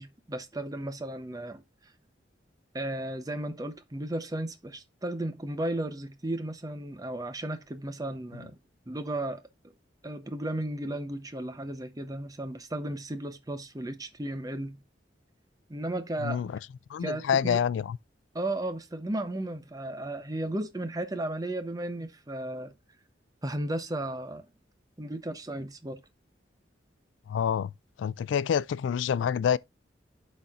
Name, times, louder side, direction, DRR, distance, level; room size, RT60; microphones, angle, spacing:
voice 1, 0.0-1.9 2.7-8.6 8.9-9.4 10.0-14.8 15.7-16.5 17.0-17.6 18.3-22.7 23.4-24.5 25.0-26.0, right 1 dB, 20° right, 0.7 m, -34 dB
voice 2, 16.9-18.0 27.3-27.7 28.0-29.6, left 8 dB, 80° left, 0.3 m, -27 dB
11.5 x 4.2 x 2.4 m
head